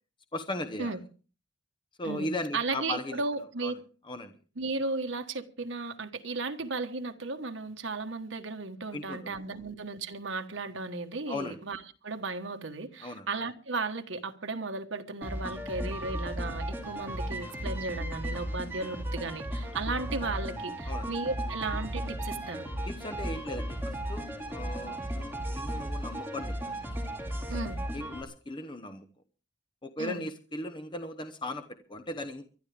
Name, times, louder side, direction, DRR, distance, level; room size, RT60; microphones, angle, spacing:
voice 1, 0.3-1.0 2.0-3.2 3.6-3.7 4.0-4.3 8.9-9.4 11.3-11.6 13.0-13.3 20.8-21.1 22.9-26.7 27.9-29.1 29.8-32.4, left 1 dB, 25° left, 0.9 m, -37 dB
voice 2, 2.0-3.7 4.6-22.7 27.5-27.8 30.0-30.2, right 3 dB, 75° right, 1.3 m, -35 dB
sound 1, 15.2-28.2, right 1 dB, 10° right, 2.4 m, -35 dB
23.0 x 12.5 x 3.4 m
head